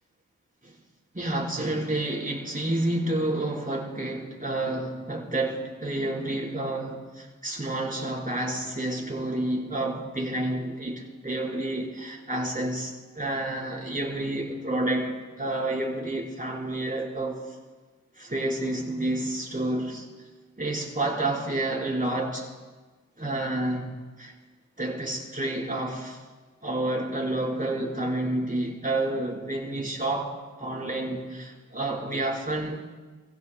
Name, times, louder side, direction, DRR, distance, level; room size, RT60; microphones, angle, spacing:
voice 1, 1.1-17.4 18.2-20.1 20.6-22.5 23.2-24.3 24.8-26.2 26.6-32.8, right 1 dB, 25° right, -3 dB, 4.3 m, -29 dB
28.0 x 16.0 x 2.2 m, 1.3 s
cardioid pair, 45°, 34 cm